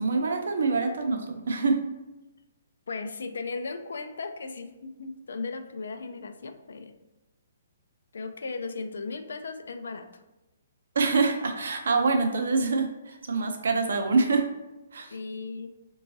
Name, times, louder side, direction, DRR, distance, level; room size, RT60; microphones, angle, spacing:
voice 1, 0.0-1.8 11.0-14.5 14.9-15.1, right 4 dB, 65° right, 5 dB, 0.5 m, -25 dB
voice 2, 2.9-6.9 8.1-10.2 15.1-15.7, left 4 dB, 85° left, 8 dB, 0.3 m, -36 dB
3.9 x 2.3 x 2.6 m, 1.0 s
hypercardioid pair, 180°, 0 cm